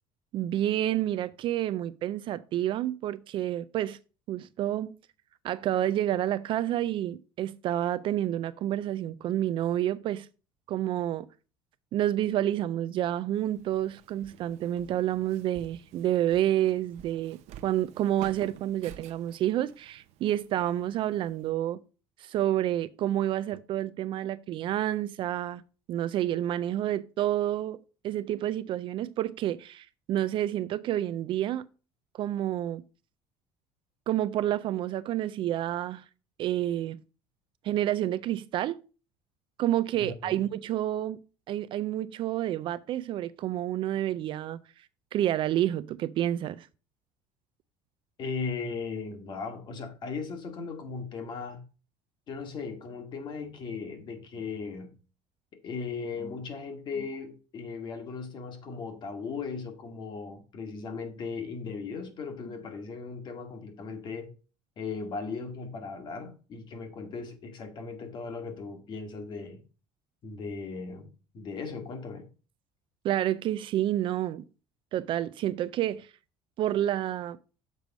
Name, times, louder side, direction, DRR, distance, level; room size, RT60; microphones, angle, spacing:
voice 1, 0.3-4.0 4.3-4.9 5.4-10.3 10.7-11.3 11.9-21.8 22.2-25.6 25.9-31.7 32.1-32.8 34.1-36.0 36.4-37.0 37.6-38.8 39.6-41.2 41.5-44.6 45.1-46.7 73.0-74.5 74.9-76.1 76.6-77.4, right 12 dB, 45° right, 0.3 m, -29 dB
Walk footsteps, 13.3-21.5, right 10 dB, 60° right, 0.7 m, -51 dB
voice 2, 40.0-40.4 48.2-51.6 52.3-55.0 55.6-64.3 64.8-69.6 70.2-72.3, left 4 dB, 35° left, 1.4 m, -37 dB
6.8 x 4.7 x 5.1 m
cardioid pair, 155°, 12 cm